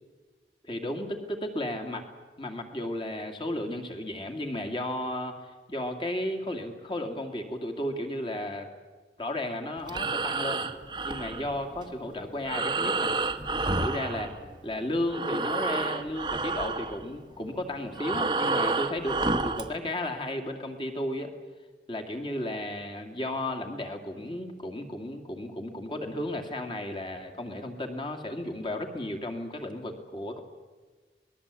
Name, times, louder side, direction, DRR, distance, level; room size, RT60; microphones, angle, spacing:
voice 1, 0.6-2.1 2.4-8.7 9.2-10.6 11.0-13.1 13.6-14.3 14.6-21.3 21.9-30.4, left 1 dB, 30° left, 5 dB, 2.5 m, -34 dB
Breathing, 9.8-14.8 15.0-19.7, right 3 dB, 25° right, 1.2 m, -30 dB
26.5 x 20.0 x 8.4 m, 1.4 s
head